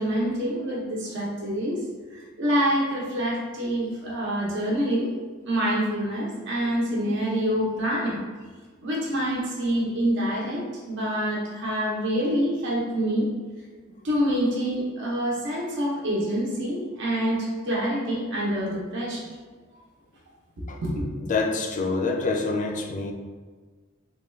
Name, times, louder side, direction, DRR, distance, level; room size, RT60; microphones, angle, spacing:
voice 1, 0.0-1.8 2.1-5.1 5.4-8.2 8.8-13.3 14.0-19.3 20.8-21.0, equal, 60° right, -4 dB, 0.7 m, -26 dB
voice 2, 21.2-23.1, left 3 dB, 35° left, 3 dB, 0.3 m, -26 dB
3.4 x 2.2 x 3.1 m, 1.4 s
head